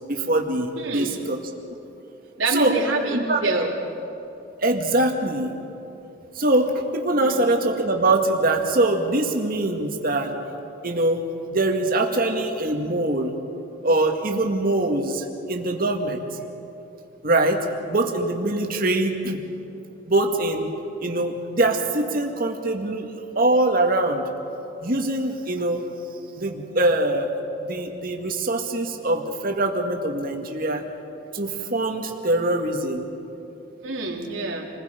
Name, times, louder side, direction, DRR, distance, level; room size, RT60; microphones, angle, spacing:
voice 1, 0.1-1.4 2.5-2.8 3.3-3.4 4.6-5.5 6.3-10.3 10.8-11.2 11.5-13.3 13.8-16.2 17.2-19.4 20.1-20.7 21.0-23.1 23.4-24.2 24.8-25.9 26.4-27.3 27.6-30.8 31.3-33.0, right 2 dB, 50° right, 3 dB, 2.0 m, -23 dB
voice 2, 0.7-1.1 2.4-3.7 7.2-7.4 33.8-34.7, right 3 dB, 85° right, -1 dB, 3.3 m, -26 dB
29.0 x 20.5 x 5.2 m, 2.9 s
head